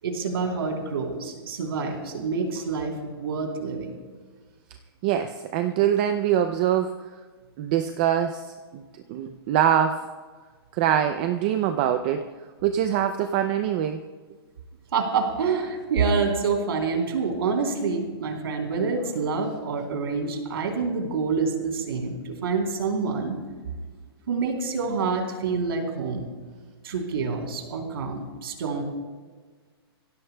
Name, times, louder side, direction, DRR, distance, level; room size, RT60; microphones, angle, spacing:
voice 1, 0.0-3.9 14.9-23.4 24.3-26.3 26.8-28.8, right 5 dB, 65° right, 2 dB, 3.3 m, -27 dB
voice 2, 5.0-6.9 7.6-10.1 10.7-12.3 12.6-14.0, right 10 dB, 20° right, 8 dB, 0.4 m, -24 dB
26.0 x 16.0 x 2.2 m, 1.5 s
hypercardioid pair, 170°, 13 cm